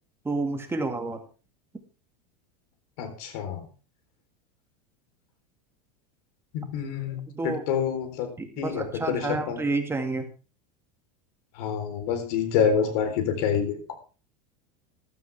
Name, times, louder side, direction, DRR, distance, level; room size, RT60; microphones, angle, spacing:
voice 1, 0.2-1.2 7.3-7.6 8.4-10.3, right 3 dB, 10° right, 5 dB, 2.1 m, -29 dB
voice 2, 3.0-3.6 6.5-8.3 8.6-9.6 11.6-13.9, left 7 dB, 65° left, 7 dB, 3.9 m, -27 dB
14.0 x 13.0 x 3.5 m, 0.35 s
supercardioid pair, 115°, 21 cm